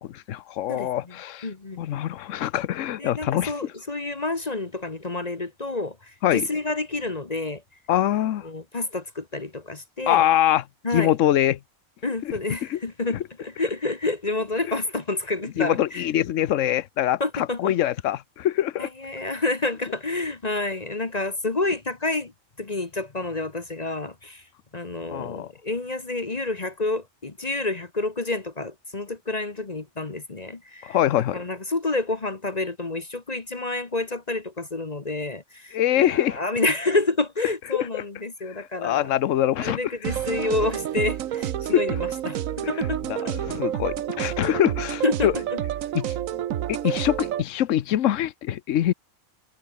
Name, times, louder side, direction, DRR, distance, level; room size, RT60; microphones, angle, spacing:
voice 1, 0.0-1.5 1.8-3.7 6.2-6.5 7.9-8.4 10.1-10.6 10.9-11.6 12.2-12.3 12.7-12.8 13.1-13.2 15.6-18.9 25.1-25.5 30.8-31.4 35.7-36.4 37.7-38.0 38.5-39.8 41.7-41.8 43.1-45.3 45.9-46.1 46.7-48.9, left 12 dB, 70° left, 1.1 m, -24 dB
voice 2, 1.4-1.8 3.0-7.6 8.4-10.2 10.8-11.1 12.0-16.0 17.2-17.7 18.8-22.3 22.6-24.4 24.7-31.0 31.3-39.1 39.6-43.3 45.0-45.6, left 2 dB, 30° left, 1.3 m, -29 dB
sound 1, 40.0-47.4, right 11 dB, 80° right, 1.2 m, -29 dB
omnidirectional pair, 1.4 m